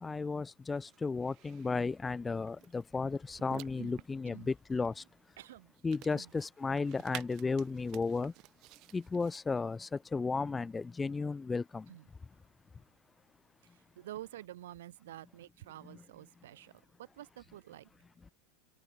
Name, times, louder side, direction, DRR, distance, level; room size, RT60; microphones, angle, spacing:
voice 1, 0.0-5.0 5.8-8.3 8.9-11.8, left 4 dB, 10° left, 1.0 m, -34 dB
sound 1, 0.6-9.4, right 20 dB, 40° right, 5.4 m, -53 dB
voice 2, 5.4-5.7 6.1-6.3 11.9-12.1 13.6-17.9, right 13 dB, 90° right, 5.1 m, -49 dB
supercardioid pair, 165°, 0 cm